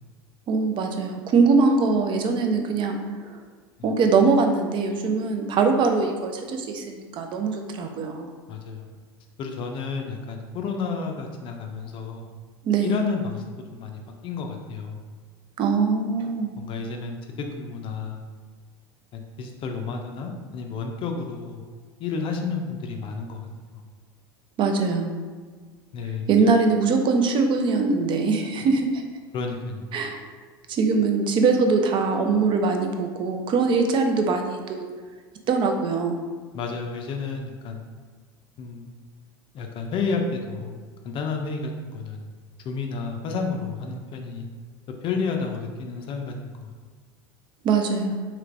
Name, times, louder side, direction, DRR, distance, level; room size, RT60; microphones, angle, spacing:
voice 1, 0.5-3.4 3.8-8.3 12.6-13.0 15.6-16.5 24.6-25.1 26.3-29.0 29.9-30.2 30.7-34.8 35.5-36.2 47.6-48.2, right 4 dB, 40° right, 4 dB, 0.5 m, -22 dB
voice 2, 8.5-8.9 9.4-12.3 12.8-13.4 13.7-15.0 16.6-17.2 17.6-18.2 19.1-21.6 22.0-23.5 23.7-23.8 25.9-26.3 29.3-29.9 36.5-37.8 38.6-38.9 39.5-40.8 41.0-42.2 42.6-44.5 45.0-46.7, left 4 dB, 45° left, 3 dB, 0.4 m, -31 dB
3.1 x 3.0 x 2.5 m, 1.5 s
hypercardioid pair, 85°, 12 cm